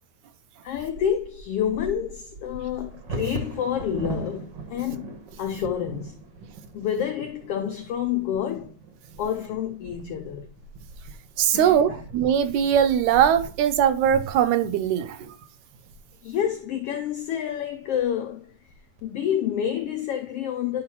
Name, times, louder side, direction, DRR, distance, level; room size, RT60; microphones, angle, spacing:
voice 1, 0.6-6.2 6.7-8.7 9.2-10.5 11.5-11.8 16.2-18.5 19.0-20.8, left 9 dB, 85° left, 1.3 m, -28 dB
Bird vocalization bird call bird song / Wind / Thunder, 0.7-16.6 17.2-17.3 17.6-18.0 18.5-19.0, right 2 dB, 60° right, 1.2 m, -40 dB
voice 2, 11.4-15.3, right 9 dB, 80° right, 1.9 m, -21 dB
11.0 x 4.6 x 2.9 m
omnidirectional pair, 3.5 m